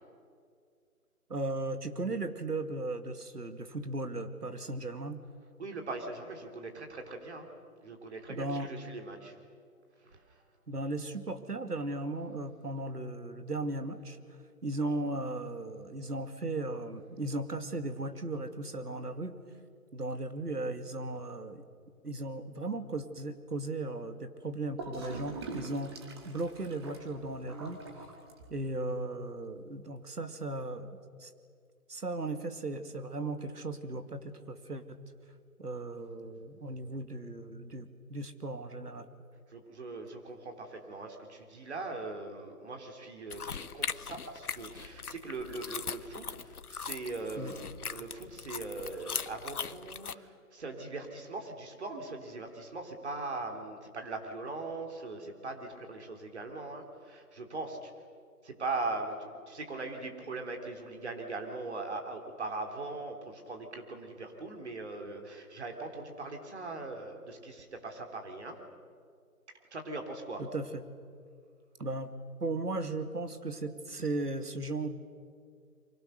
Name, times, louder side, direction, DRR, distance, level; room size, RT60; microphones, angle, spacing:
voice 1, 1.3-5.2 8.3-8.7 10.7-14.2 14.6-19.3 19.9-21.6 22.0-26.0 26.2-27.8 28.5-30.9 31.2-31.3 31.9-35.1 35.6-39.1 47.4-47.5 70.4-70.8 71.8-72.1 72.4-74.9, right 2 dB, 85° right, 8 dB, 2.3 m, -36 dB
voice 2, 5.6-7.5 7.8-9.4 10.0-10.4 39.5-57.9 58.4-68.6 69.7-70.4, right 3 dB, 45° right, 4 dB, 3.5 m, -40 dB
Gurgling / Toilet flush, 24.8-28.8, right 3 dB, 15° right, 1.8 m, -44 dB
sound 1, 43.3-50.1, left 6 dB, 75° left, 0.9 m, -40 dB
30.0 x 24.5 x 6.6 m, 2.2 s
figure-of-eight pair, 155°, 45 cm